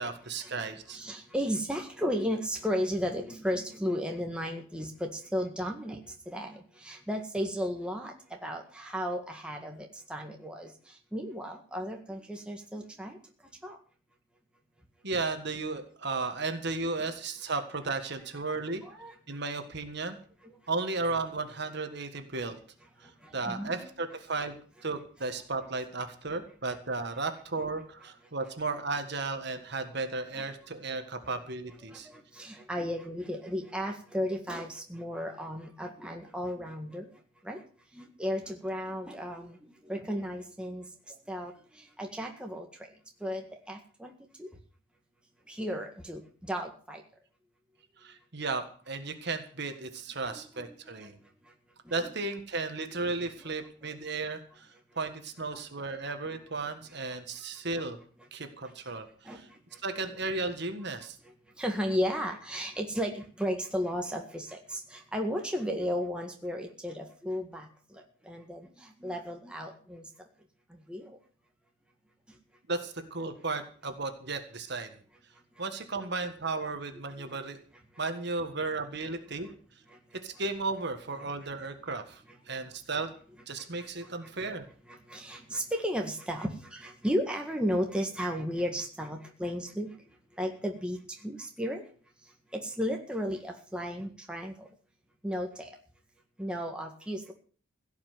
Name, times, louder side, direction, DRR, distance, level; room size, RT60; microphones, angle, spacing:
voice 1, 0.0-1.0 15.0-18.8 19.3-20.2 20.7-22.6 23.0-24.5 24.8-32.1 48.0-51.2 51.9-58.0 58.3-59.5 59.8-61.2 72.7-75.0 75.6-77.6 78.0-79.5 80.1-83.1 83.5-84.7, right 3 dB, 55° right, 7 dB, 1.7 m, -34 dB
voice 2, 0.9-6.0 6.3-10.7 11.1-13.2 13.6-13.8 18.8-19.2 20.4-20.6 23.2-23.8 30.4-30.5 31.9-37.1 37.4-37.6 37.9-39.6 39.9-41.5 42.0-42.7 43.2-44.1 44.4-44.5 45.5-47.0 50.2-51.1 52.0-52.1 59.3-59.4 61.6-70.0 70.9-71.2 76.0-76.1 77.2-77.3 79.9-80.0 84.9-89.9 90.4-91.8 92.5-94.7 95.2-95.7 96.4-97.3, equal, 5° right, 2 dB, 1.8 m, -34 dB
16.5 x 5.9 x 9.5 m, 0.42 s
head